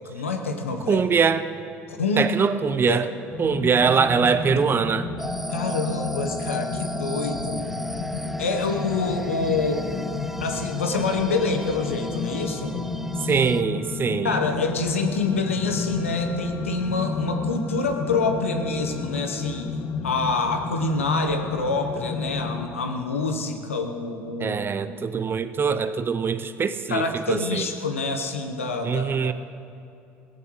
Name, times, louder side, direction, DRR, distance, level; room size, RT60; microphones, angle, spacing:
voice 1, 0.0-1.0 1.9-2.3 2.9-3.0 5.5-7.8 8.4-9.8 10.4-12.8 14.2-19.7 20.0-24.6 26.9-29.3, left 3 dB, 90° left, 6 dB, 1.2 m, -26 dB
voice 2, 0.9-1.4 2.2-3.1 3.4-5.1 13.2-14.4 24.4-27.6 28.8-29.3, right 6 dB, 30° right, 12 dB, 0.8 m, -23 dB
sound 1, 3.3-22.7, left 4 dB, 50° left, 1.3 m, -31 dB
sound 2, 5.2-13.6, right 1 dB, 5° right, 0.4 m, -36 dB
21.5 x 16.0 x 3.2 m, 2.7 s
hypercardioid pair, 65°, 7 cm